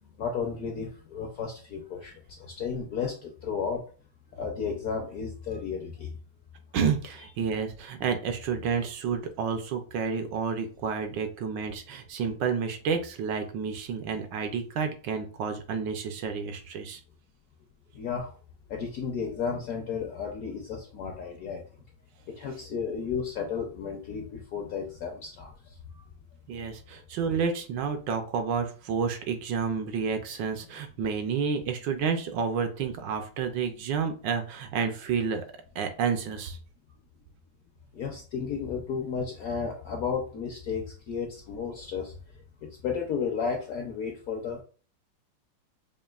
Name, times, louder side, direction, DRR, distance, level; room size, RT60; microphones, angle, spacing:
voice 1, 0.2-3.8 4.3-6.1 17.9-18.3 18.7-21.6 22.3-26.0 37.9-42.1 42.6-44.6, left 6 dB, 70° left, 1 dB, 0.8 m, -33 dB
voice 2, 6.7-17.0 26.5-35.4 35.7-36.6, right 6 dB, 75° right, 6 dB, 1.2 m, -30 dB
5.2 x 2.5 x 2.3 m, 0.39 s
omnidirectional pair, 2.1 m